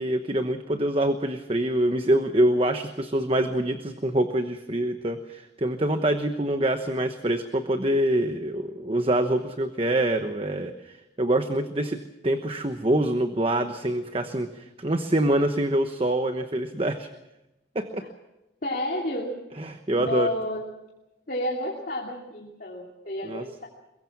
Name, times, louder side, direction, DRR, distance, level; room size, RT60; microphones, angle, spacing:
voice 1, 0.0-17.1 17.7-18.0 19.6-20.3 23.2-23.5, right 1 dB, 30° right, 7 dB, 1.0 m, -25 dB
voice 2, 18.6-19.4 19.9-20.6 21.3-23.7, left 1 dB, 50° left, -2 dB, 2.9 m, -31 dB
23.0 x 22.5 x 6.1 m, 0.95 s
head